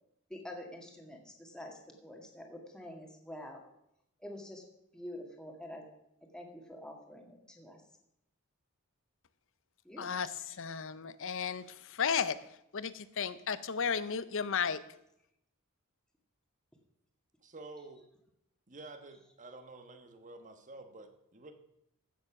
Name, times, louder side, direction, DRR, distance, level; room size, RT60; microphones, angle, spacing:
voice 1, 0.3-3.6 4.2-4.6 4.9-5.8 6.2-7.8 9.8-10.1, left 1 dB, 5° left, 1 dB, 2.0 m, -47 dB
voice 2, 10.0-10.3 10.6-11.6 11.9-12.4 12.7-14.8, left 6 dB, 60° left, 15 dB, 0.7 m, -33 dB
voice 3, 17.4-18.0 18.7-21.5, right 2 dB, 35° right, 7 dB, 1.3 m, -50 dB
15.5 x 7.2 x 6.0 m, 0.80 s
head